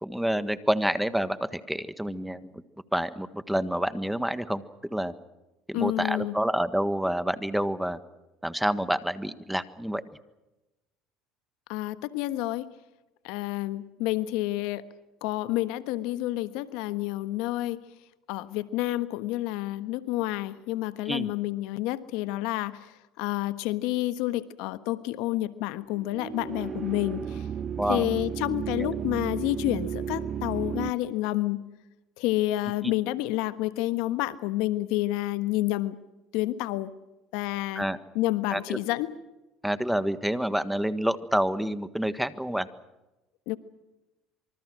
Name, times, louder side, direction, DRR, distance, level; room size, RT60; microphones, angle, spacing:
voice 1, 0.0-2.6 2.9-4.6 4.9-5.1 5.7-8.0 8.4-10.0 21.0-21.3 27.8-28.1 28.8-28.9 32.8-32.9 37.7-38.0 38.5-38.8 39.6-42.7, equal, 5° right, 12 dB, 1.5 m, -28 dB
voice 2, 5.7-6.4 11.7-12.7 13.2-14.9 15.2-17.8 18.3-22.9 23.2-27.4 27.9-31.7 32.2-36.0 36.3-36.9 37.3-37.9 38.1-39.1 43.5-43.6, left 16 dB, 75° left, 13 dB, 1.3 m, -29 dB
sound 1, 25.9-30.9, right 8 dB, 40° right, 0.9 m, -33 dB
26.5 x 24.5 x 6.3 m, 1.0 s
supercardioid pair, 95°, 0 cm